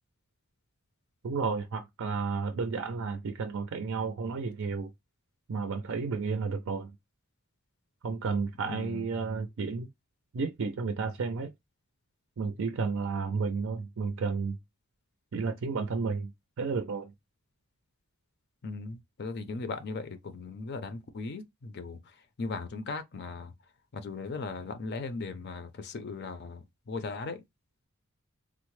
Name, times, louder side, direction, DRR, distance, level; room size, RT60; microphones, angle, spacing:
voice 1, 1.2-4.9 5.5-6.9 8.0-9.9 10.3-11.5 12.4-14.6 15.3-16.3 16.6-17.1, right 4 dB, 65° right, 0.4 m, -32 dB
voice 2, 8.7-9.1 18.6-22.0 22.4-23.5 23.9-27.4, left 4 dB, 50° left, 0.5 m, -38 dB
3.6 x 2.0 x 3.0 m
head